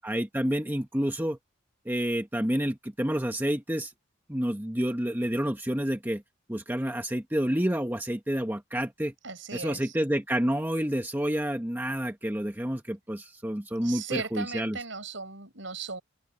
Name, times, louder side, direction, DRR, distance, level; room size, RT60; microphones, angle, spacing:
voice 1, 0.0-1.4 1.8-3.9 4.3-6.2 6.5-9.1 9.5-14.8, equal, 10° right, 1.2 m, -29 dB
voice 2, 9.2-10.0 13.8-16.0, right 4 dB, 65° right, 7.2 m, -37 dB
open air
head